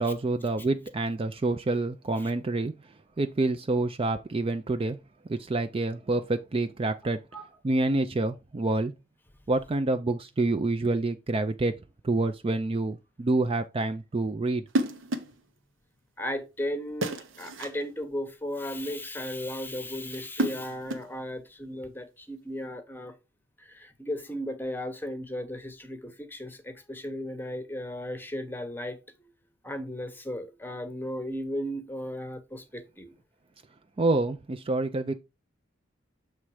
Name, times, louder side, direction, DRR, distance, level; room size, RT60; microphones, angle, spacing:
voice 1, 0.0-2.7 3.2-5.0 5.3-7.2 7.6-8.9 9.5-11.7 12.0-14.6 34.0-35.1, right 2 dB, 30° right, 0.4 m, -27 dB
sound 1, 14.7-15.4 17.0-17.8 20.1-21.2, right 1 dB, 90° right, 1.0 m, -31 dB
voice 2, 16.2-23.2 23.6-29.0 29.6-33.1, left 1 dB, 10° left, 0.9 m, -35 dB
7.3 x 3.2 x 4.8 m
head